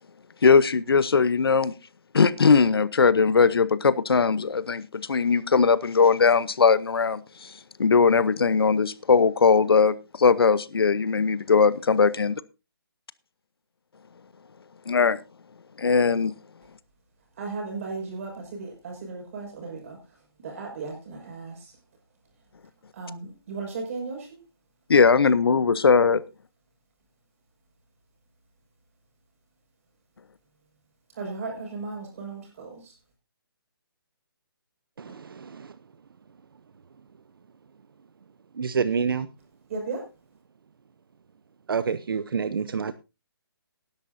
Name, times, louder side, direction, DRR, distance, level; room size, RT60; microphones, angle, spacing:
voice 1, 0.4-1.7 2.1-7.5 7.8-12.4 14.9-15.2 15.8-16.3 24.9-26.2, left 5 dB, 75° left, 0.9 m, -20 dB
voice 2, 17.4-21.8 22.9-24.4 31.1-32.9 39.7-40.1, right 4 dB, 35° right, 5.8 m, -36 dB
voice 3, 35.0-35.7 38.5-39.3 41.7-42.9, right 6 dB, 65° right, 0.8 m, -28 dB
18.5 x 11.0 x 2.7 m
hypercardioid pair, 165°, 13 cm